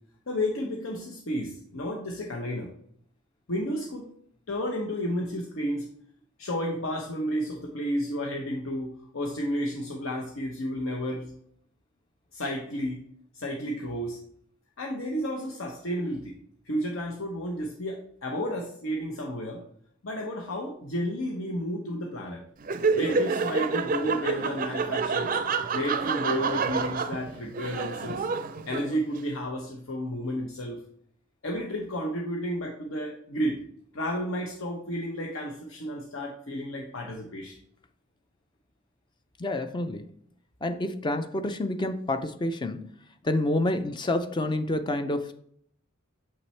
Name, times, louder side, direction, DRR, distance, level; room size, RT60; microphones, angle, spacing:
voice 1, 0.3-2.7 3.5-4.1 4.5-5.9 6.4-11.3 12.3-13.0 13.3-14.2 14.8-16.4 16.6-19.6 20.0-22.4 22.9-25.4 25.7-28.3 28.6-30.8 31.4-33.6 33.9-37.6, equal, 70° left, 0 dB, 0.9 m, -32 dB
Laughter, 22.6-29.2, right 4 dB, 40° right, 0.4 m, -28 dB
voice 2, 39.4-40.1 40.6-42.9 43.2-45.3, left 1 dB, 20° left, 8 dB, 0.4 m, -28 dB
7.3 x 5.7 x 3.2 m, 0.65 s
head